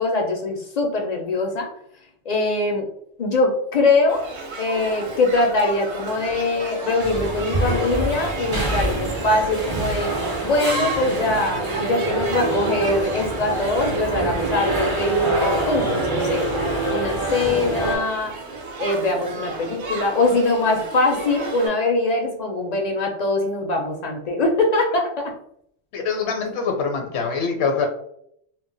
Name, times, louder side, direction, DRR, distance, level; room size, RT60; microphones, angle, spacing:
voice 1, 0.0-1.7 2.3-2.9 3.2-4.2 4.6-10.1 10.4-16.5 16.9-18.3 18.8-25.3, left 2 dB, 55° left, 2 dB, 0.4 m, -22 dB
Shout / Human group actions, 4.1-21.7, right 2 dB, 65° right, 0.8 m, -33 dB
sound 1, 7.0-18.0, right 2 dB, 30° right, 0.4 m, -25 dB
voice 2, 25.9-27.9, left 5 dB, 75° left, 4 dB, 0.8 m, -24 dB
2.2 x 2.1 x 3.8 m, 0.71 s
omnidirectional pair, 1.1 m